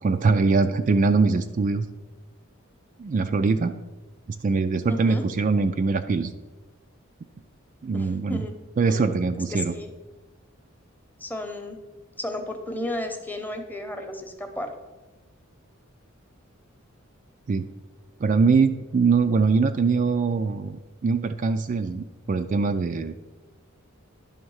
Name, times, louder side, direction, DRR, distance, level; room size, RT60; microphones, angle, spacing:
voice 1, 0.0-1.9 3.0-3.7 4.3-6.3 7.8-8.4 8.8-9.7 17.5-17.7 18.2-23.1, right 4 dB, 40° right, 8 dB, 0.3 m, -22 dB
voice 2, 4.9-5.2 7.9-8.5 8.9-9.1 9.5-9.9 11.2-11.8 12.2-14.7, left 1 dB, 10° left, 5 dB, 0.8 m, -33 dB
10.5 x 3.6 x 6.3 m, 1.1 s
head